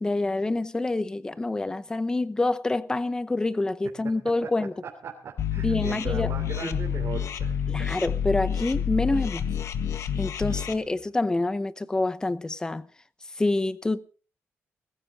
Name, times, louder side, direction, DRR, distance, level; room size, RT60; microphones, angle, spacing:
voice 1, 0.0-4.7 5.6-6.3 7.7-9.5 10.2-12.9 13.4-14.0, left 2 dB, 15° left, 0.8 m, -27 dB
voice 2, 3.8-4.5 4.8-8.1 10.5-10.8, right 6 dB, 60° right, 3.2 m, -39 dB
sound 1, 5.4-10.7, left 8 dB, 75° left, 1.5 m, -28 dB
20.0 x 15.5 x 3.7 m
wide cardioid pair, 170°, 5 cm